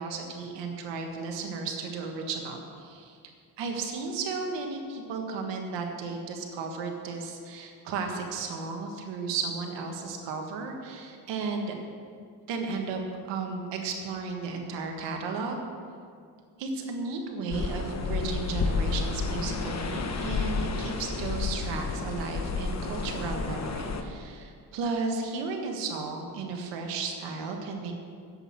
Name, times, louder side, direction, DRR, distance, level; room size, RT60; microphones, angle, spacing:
voice 1, 0.0-3.2 3.6-11.8 12.5-13.0 13.3-15.6 16.6-27.9, right 4 dB, 90° right, 3 dB, 1.7 m, -34 dB
sound 1, 17.5-24.0, left 4 dB, 40° left, 1.2 m, -31 dB
8.1 x 7.9 x 8.9 m, 2.2 s
cardioid pair, 75°, 42 cm